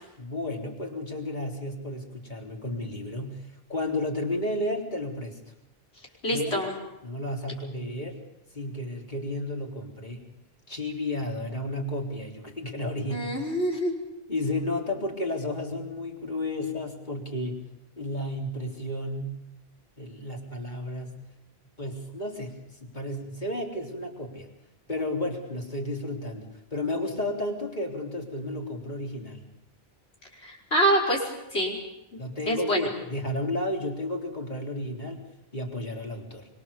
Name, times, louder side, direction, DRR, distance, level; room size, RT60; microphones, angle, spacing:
voice 1, 0.2-5.4 6.3-6.6 7.0-8.2 8.5-10.3 10.7-13.4 14.3-17.6 18.0-19.4 20.0-21.2 21.8-24.5 24.9-29.5 32.2-35.2 35.5-36.5, left 1 dB, 45° left, 0 dB, 3.9 m, -32 dB
voice 2, 6.2-6.7 13.1-13.9 30.4-31.2 31.5-31.8 32.5-32.9, right 1 dB, 85° left, 1 dB, 5.5 m, -25 dB
25.0 x 24.5 x 7.1 m, 0.88 s
omnidirectional pair, 1.1 m